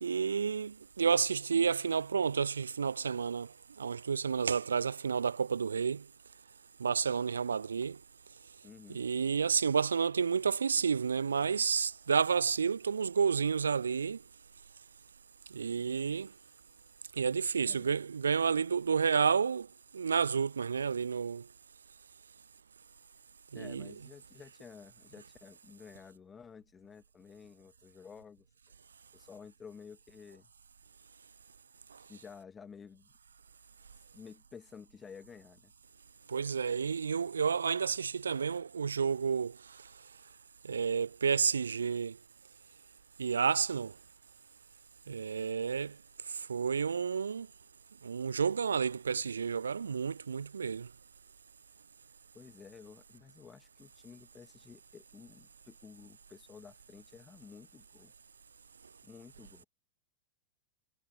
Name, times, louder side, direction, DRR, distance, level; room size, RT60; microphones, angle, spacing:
voice 1, 0.0-3.5 3.8-6.0 6.8-8.0 8.9-14.2 15.5-16.3 17.2-19.7 19.9-21.4 23.5-23.9 36.3-39.6 40.7-42.2 43.2-43.9 45.1-45.9 46.5-47.5 48.0-50.9, right 6 dB, 70° right, 0.3 m, -30 dB
voice 2, 8.6-9.0 17.6-17.9 23.5-28.5 29.1-30.5 32.1-33.1 34.1-35.7 52.3-58.1 59.0-59.7, left 6 dB, 20° left, 1.8 m, -52 dB
figure-of-eight pair, 90°, 0 cm